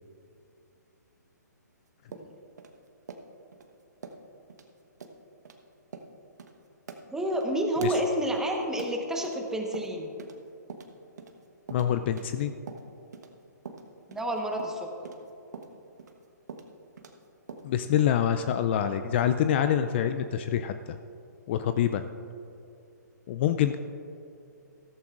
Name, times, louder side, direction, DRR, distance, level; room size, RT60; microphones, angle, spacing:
sound 1, 2.1-3.7 4.0-4.2 4.5-4.7 5.0-5.2 5.4-5.6 5.9-6.1 6.4-6.5 6.9-9.4 9.7-10.4 10.7-13.3 13.7-17.2 17.5-18.2, right 5 dB, 70° right, 1.2 m, -44 dB
voice 1, 7.1-10.1 14.1-15.1, right 1 dB, 5° right, 2 dB, 1.1 m, -29 dB
voice 2, 11.7-12.5 17.6-20.7 21.5-22.0 23.3-23.8, left 10 dB, 40° left, 9 dB, 0.4 m, -26 dB
15.0 x 14.0 x 2.5 m, 2.7 s
hypercardioid pair, 135°, 10 cm